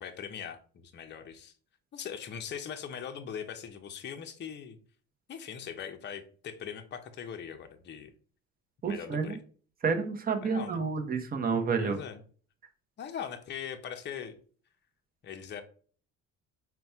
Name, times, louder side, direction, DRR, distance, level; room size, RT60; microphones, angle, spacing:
voice 1, 0.0-1.5 1.9-4.8 5.3-8.1 8.9-9.4 10.4-10.8 11.8-12.2 13.0-14.4 15.2-15.6, left 8 dB, 35° left, 6 dB, 0.6 m, -40 dB
voice 2, 8.8-9.4 9.8-12.0, right 5 dB, 25° right, 5 dB, 0.7 m, -29 dB
4.0 x 2.2 x 4.4 m, 0.43 s
cardioid pair, 110°, 33 cm